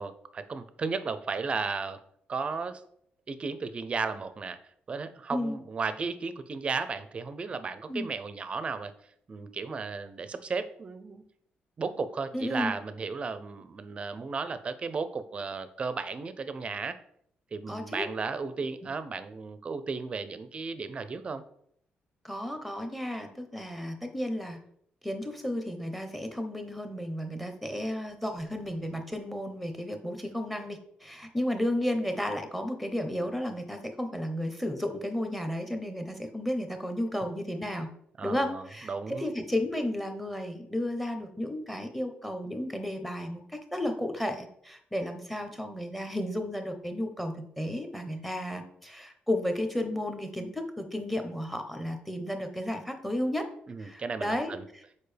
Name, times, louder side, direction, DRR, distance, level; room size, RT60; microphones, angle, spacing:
voice 1, 0.0-2.0 2.3-2.8 3.3-4.6 4.9-8.9 9.3-11.2 11.8-17.0 17.5-21.4 38.2-39.3 53.7-54.6, right 4 dB, 30° right, 12 dB, 0.5 m, -34 dB
voice 2, 12.3-12.7 17.7-18.1 22.2-24.6 25.0-37.9 38.2-53.5 53.8-54.8, left 1 dB, ahead, 6 dB, 0.7 m, -33 dB
6.7 x 4.8 x 3.3 m, 0.68 s
cardioid pair, 145°, 4 cm